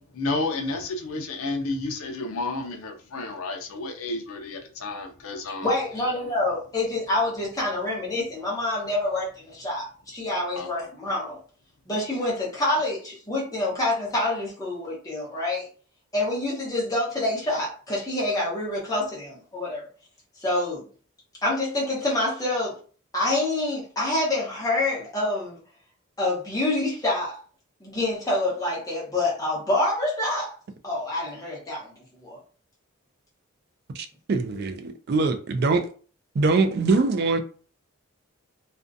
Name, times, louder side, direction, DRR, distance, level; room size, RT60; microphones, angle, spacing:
voice 1, 0.1-5.7 10.5-10.7, left 2 dB, 85° left, 0.5 m, -31 dB
voice 2, 5.6-11.4 11.9-15.7 16.1-19.8 20.4-20.8 21.4-22.8 23.1-25.6 26.2-27.4 27.8-30.5 30.8-31.9 32.2-32.4, left 2 dB, 15° left, 0.9 m, -27 dB
voice 3, 33.9-35.9 36.3-37.4, right 3 dB, 50° right, 0.3 m, -23 dB
2.5 x 2.2 x 2.5 m
head